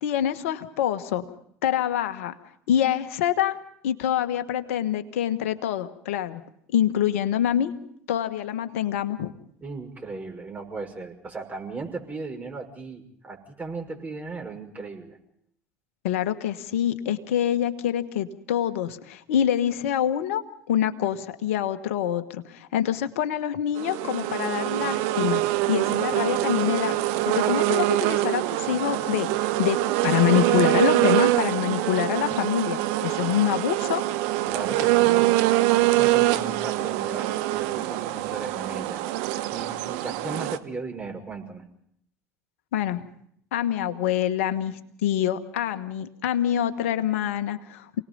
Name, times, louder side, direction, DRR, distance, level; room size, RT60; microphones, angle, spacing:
voice 1, 0.0-1.2 1.6-2.3 2.7-3.6 3.8-6.4 6.7-7.7 8.1-9.3 16.0-27.0 27.2-29.8 30.0-34.0 42.7-43.1 43.5-48.0, left 10 dB, 70° left, 10 dB, 1.4 m, -26 dB
voice 2, 9.6-15.2 34.5-35.4 35.8-39.0 39.5-41.6, right 4 dB, 20° right, 3 dB, 5.9 m, -36 dB
sound 1, 23.8-40.6, right 16 dB, 65° right, 1.0 m, -24 dB
28.0 x 19.0 x 5.5 m, 0.69 s
hypercardioid pair, 70°, 7 cm